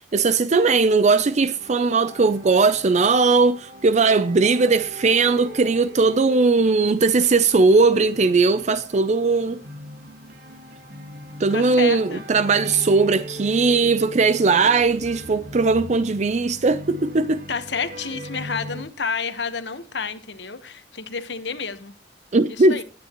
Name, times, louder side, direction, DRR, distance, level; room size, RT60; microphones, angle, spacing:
voice 1, 0.1-9.6 11.4-17.4 22.3-22.8, right 4 dB, 40° right, 0.5 m, -19 dB
sound 1, 0.7-18.8, equal, 55° right, 1.5 m, -40 dB
voice 2, 11.5-12.2 17.5-21.9 22.6-22.8, left 5 dB, 70° left, 1.2 m, -30 dB
19.5 x 9.6 x 3.0 m
head